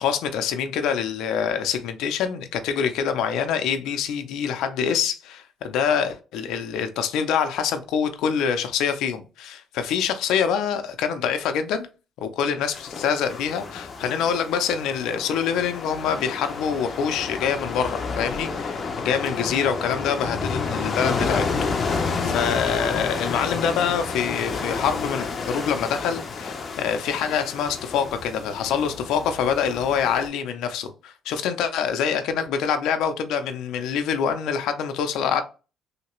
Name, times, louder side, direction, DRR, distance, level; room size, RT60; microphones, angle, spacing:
voice 1, 0.0-11.9 12.2-18.8 19.0-21.5 22.2-35.4, left 7 dB, 85° left, 0.5 m, -25 dB
sound 1, 12.7-30.3, left 4 dB, 40° left, 0.6 m, -30 dB
3.2 x 2.8 x 3.0 m
cardioid pair, 105°, 0 cm